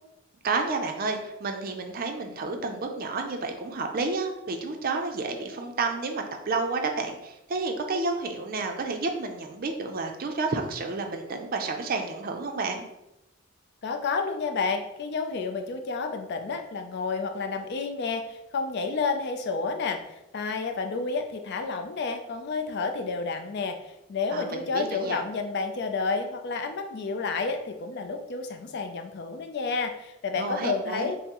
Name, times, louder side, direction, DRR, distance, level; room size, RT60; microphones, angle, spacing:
voice 1, 0.4-12.8 24.3-25.2 30.4-31.1, right 3 dB, 45° right, 4 dB, 0.4 m, -30 dB
voice 2, 13.8-20.0 20.3-31.2, left 4 dB, 55° left, 5 dB, 0.4 m, -30 dB
5.6 x 2.0 x 2.9 m, 0.91 s
head